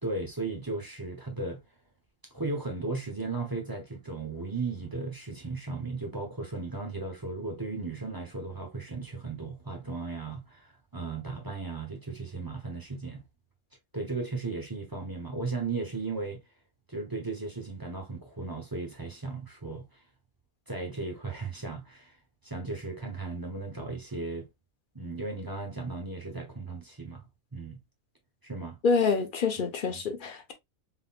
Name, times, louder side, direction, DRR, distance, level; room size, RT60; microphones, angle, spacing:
voice 1, 0.0-1.6 2.3-13.2 13.9-16.4 16.9-20.0 20.7-22.2 22.4-24.5 24.9-27.2 27.5-27.8 28.4-28.8 29.9-30.0, right 3 dB, 15° right, 0.9 m, -36 dB
voice 2, 28.8-30.5, left 5 dB, 45° left, 0.8 m, -27 dB
3.9 x 3.8 x 2.3 m
omnidirectional pair, 1.5 m